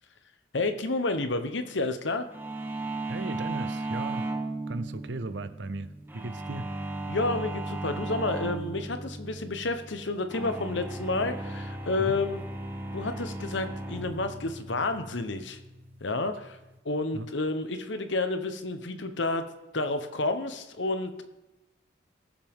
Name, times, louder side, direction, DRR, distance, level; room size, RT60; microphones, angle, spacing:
voice 1, 0.5-2.2 7.1-12.4 12.9-15.6 16.0-16.6 16.8-19.4 19.7-21.2, left 2 dB, 70° left, 1.1 m, -30 dB
sound 1, 2.3-16.8, right 2 dB, 10° right, 0.8 m, -36 dB
voice 2, 3.1-4.3 4.7-6.7 12.0-12.2 17.1-17.3, right 2 dB, 65° right, 0.7 m, -36 dB
19.0 x 7.5 x 3.7 m
head